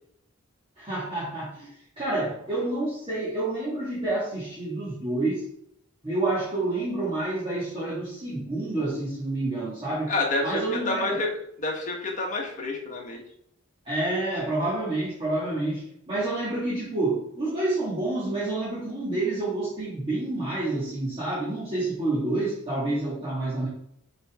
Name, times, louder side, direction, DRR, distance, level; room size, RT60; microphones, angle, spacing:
voice 1, 0.8-1.7 2.0-5.4 6.0-10.1 10.4-11.2 13.9-23.7, right 2 dB, 25° right, -9 dB, 1.9 m, -28 dB
voice 2, 10.1-11.3 11.6-13.2, left 2 dB, 35° left, 0 dB, 1.5 m, -28 dB
6.6 x 4.3 x 3.6 m, 0.72 s
head